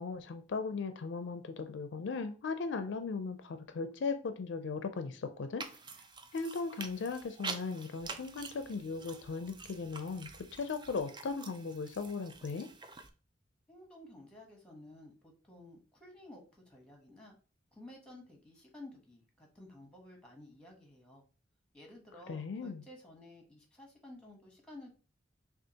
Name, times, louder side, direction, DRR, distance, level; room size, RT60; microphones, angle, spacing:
voice 1, 0.0-5.6 6.3-12.7 22.3-22.8, left 4 dB, 65° left, 8 dB, 0.4 m, -37 dB
sound 1, 5.6-13.1, right 4 dB, 25° right, 0.4 m, -47 dB
voice 2, 13.7-17.4 17.7-21.2 21.7-24.9, left 1 dB, 5° left, 1 dB, 1.0 m, -53 dB
6.2 x 2.4 x 2.8 m, 0.37 s
head